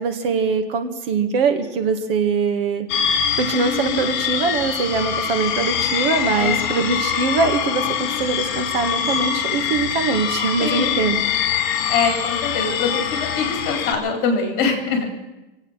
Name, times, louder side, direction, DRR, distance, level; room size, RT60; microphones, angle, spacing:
voice 1, 0.0-2.9 3.4-11.5, right 5 dB, 65° right, 6 dB, 2.0 m, -22 dB
sound 1, 2.9-13.9, left 8 dB, 50° left, 2.4 m, -24 dB
voice 2, 6.4-6.9 10.6-11.1 11.9-15.1, left 5 dB, 30° left, 4 dB, 3.8 m, -23 dB
25.5 x 8.7 x 6.5 m, 1.0 s
supercardioid pair, 165°, 31 cm